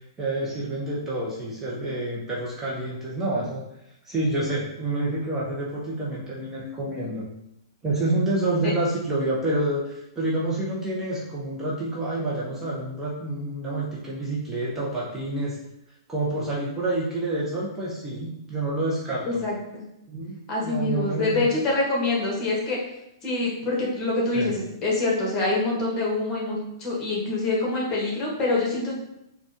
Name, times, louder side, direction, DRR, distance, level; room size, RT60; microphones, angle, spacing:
voice 1, 0.2-3.7 4.0-7.3 7.8-15.6 16.1-19.4 20.1-20.3 20.6-21.5 24.3-24.5, right 2 dB, 15° right, -6 dB, 0.7 m, -28 dB
voice 2, 19.3-19.8 20.5-22.8 23.2-28.9, left 2 dB, 25° left, -4 dB, 1.2 m, -25 dB
4.2 x 2.3 x 2.9 m, 0.83 s
figure-of-eight pair, 110°, 2 cm